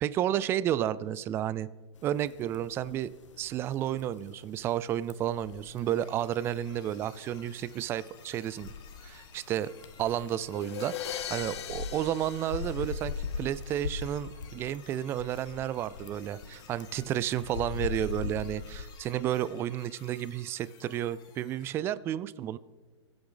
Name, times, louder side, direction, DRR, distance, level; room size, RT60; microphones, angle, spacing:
voice 1, 0.0-1.7 2.0-3.1 3.4-8.7 9.0-9.7 10.0-22.6, right 11 dB, 15° right, 17 dB, 0.3 m, -32 dB
sound 1, 2.0-18.8, left 5 dB, 85° left, 1.1 m, -41 dB
sound 2, 5.1-21.8, left 6 dB, 25° left, 2.2 m, -56 dB
sound 3, 10.5-13.5, left 10 dB, 60° left, 1.0 m, -39 dB
22.0 x 8.7 x 3.9 m, 1.4 s
hypercardioid pair, 145°, 15 cm